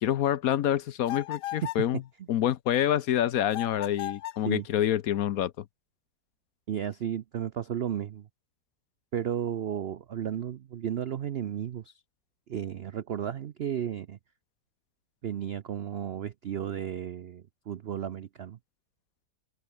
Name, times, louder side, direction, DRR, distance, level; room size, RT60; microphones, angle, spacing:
voice 1, 0.0-2.0 2.3-5.6, left 11 dB, 65° left, 1.1 m, -27 dB
sound 1, 1.1-1.9 3.5-4.5, left 14 dB, 90° left, 1.3 m, -36 dB
voice 2, 6.7-8.3 9.1-11.9 12.5-14.2 15.2-18.6, right 9 dB, 70° right, 0.5 m, -33 dB
omnidirectional pair, 1.8 m